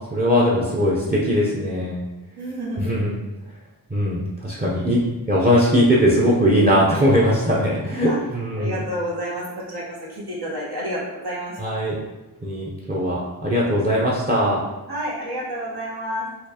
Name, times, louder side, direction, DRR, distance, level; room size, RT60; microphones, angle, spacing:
voice 1, 0.1-2.0 2.8-3.2 3.9-5.0 5.3-8.8 11.6-11.9 12.4-14.6, equal, 25° right, -5 dB, 0.6 m, -20 dB
voice 2, 2.3-3.1 8.1-8.2 8.6-9.8 10.1-11.8 14.9-16.3, equal, 80° right, -6 dB, 1.2 m, -29 dB
4.3 x 2.4 x 2.8 m, 1.1 s
wide cardioid pair, 60°, 38 cm